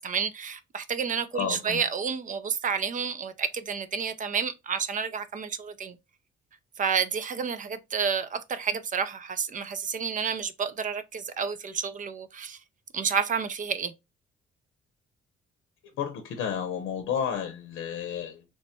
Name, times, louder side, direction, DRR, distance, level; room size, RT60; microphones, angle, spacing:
voice 1, 0.0-6.0 6.8-12.6 12.9-13.9, right 6 dB, 40° right, 0.5 m, -30 dB
voice 2, 1.3-1.8 15.9-18.4, left 8 dB, 85° left, 0.6 m, -31 dB
3.1 x 2.2 x 4.2 m
cardioid pair, 90°, 20 cm